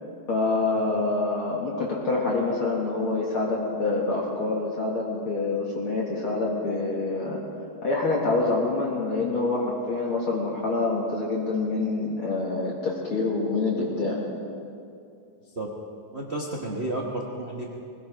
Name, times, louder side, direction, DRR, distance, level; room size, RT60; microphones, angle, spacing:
voice 1, 0.3-7.4 7.8-14.2, left 3 dB, 50° left, -4 dB, 2.3 m, -26 dB
voice 2, 16.1-17.7, right 2 dB, 65° right, -2 dB, 0.6 m, -31 dB
21.0 x 19.5 x 3.4 m, 2.5 s
omnidirectional pair, 3.3 m